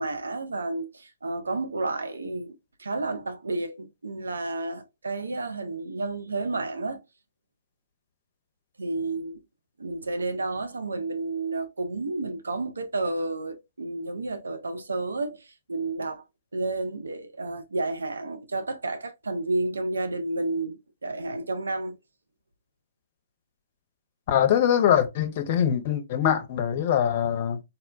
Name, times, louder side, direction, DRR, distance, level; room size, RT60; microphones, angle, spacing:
voice 1, 0.0-2.5 2.8-7.0 8.8-9.4 9.8-16.2 16.5-22.0, right 2 dB, 75° right, 0.6 m, -31 dB
voice 2, 24.3-27.6, left 9 dB, 45° left, 0.6 m, -23 dB
4.1 x 2.1 x 2.4 m
figure-of-eight pair, 120°, 0 cm